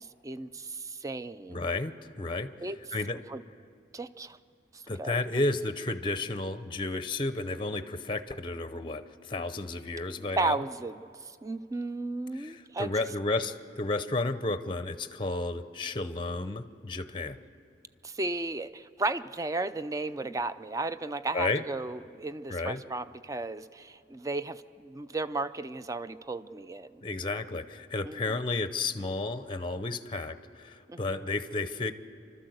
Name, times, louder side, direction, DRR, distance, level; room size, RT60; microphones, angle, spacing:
voice 1, 0.0-1.6 2.6-2.8 3.3-3.4 3.9-4.4 4.7-5.2 10.4-12.9 18.0-27.0 28.0-28.4 30.9-31.3, right 2 dB, 20° right, 13 dB, 0.4 m, -34 dB
voice 2, 1.5-2.5 2.9-3.2 4.9-10.6 12.3-17.4 21.3-21.6 22.5-22.8 27.0-31.9, left 2 dB, 25° left, 11 dB, 0.6 m, -32 dB
29.0 x 12.5 x 7.9 m, 2.6 s
head